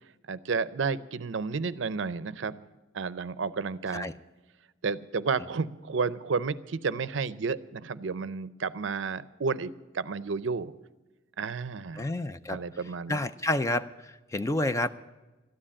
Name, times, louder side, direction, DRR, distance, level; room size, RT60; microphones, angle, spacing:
voice 1, 0.3-2.6 2.9-4.1 4.8-10.7 11.4-12.1 12.5-13.2, right 5 dB, 65° right, 17 dB, 0.5 m, -31 dB
voice 2, 12.0-12.6 13.1-14.9, left 1 dB, 15° left, 12 dB, 0.4 m, -29 dB
13.5 x 10.0 x 8.5 m, 1.1 s
head